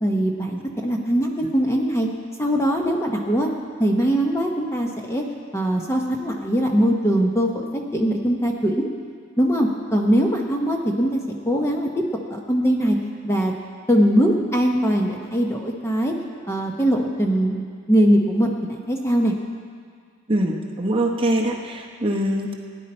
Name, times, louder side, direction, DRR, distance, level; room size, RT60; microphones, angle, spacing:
voice 1, 0.0-2.1 2.4-3.5 3.8-5.2 5.5-8.9 9.4-12.0 12.3-13.0 13.2-13.5 13.9-16.1 16.5-17.6 17.9-19.3, equal, 10° left, 1 dB, 0.8 m, -21 dB
voice 2, 20.3-22.5, right 1 dB, 25° right, 0 dB, 0.9 m, -23 dB
18.0 x 10.0 x 4.3 m, 2.1 s
head